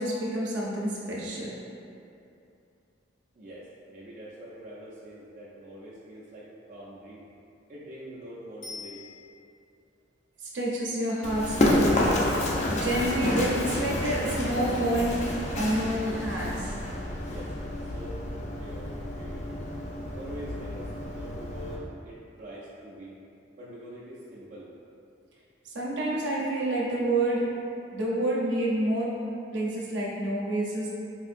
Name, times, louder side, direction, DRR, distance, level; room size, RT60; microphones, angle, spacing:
voice 1, 0.0-1.5 10.5-15.3 15.5-16.7 25.6-27.5 27.9-29.2 29.5-30.9, right 1 dB, 75° right, -5 dB, 0.7 m, -28 dB
voice 2, 3.3-7.3 7.7-9.0 17.2-17.5 17.8-18.2 18.6-19.6 20.1-23.2 23.6-24.7, right 1 dB, 45° right, -7 dB, 0.4 m, -44 dB
Bicycle bell, 8.6-9.7 18.8-18.9, left 4 dB, 70° left, 0.9 m, -44 dB
Run, 11.2-21.8, left 1 dB, 40° left, 0.4 m, -29 dB
3.7 x 2.5 x 2.5 m, 2.6 s
head